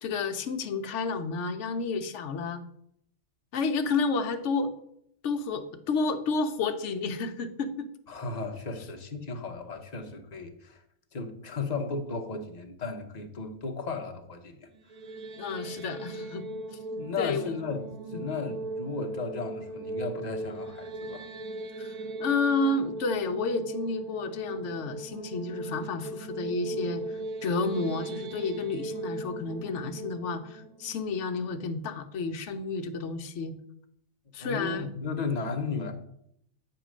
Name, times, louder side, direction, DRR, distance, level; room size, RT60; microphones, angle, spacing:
voice 1, 0.0-2.6 3.5-4.7 5.2-7.9 15.4-16.5 16.9-17.5 18.1-18.2 21.8-21.9 22.2-27.0 27.4-33.5 34.3-34.9, left 4 dB, 65° left, 0.9 m, -30 dB
voice 2, 8.1-10.8 11.1-14.7 15.6-15.7 17.0-21.2 34.4-35.9, left 4 dB, 40° left, 0.7 m, -35 dB
sound 1, 14.7-31.9, right 2 dB, 85° right, 1.2 m, -38 dB
8.8 x 3.1 x 6.2 m
omnidirectional pair, 1.5 m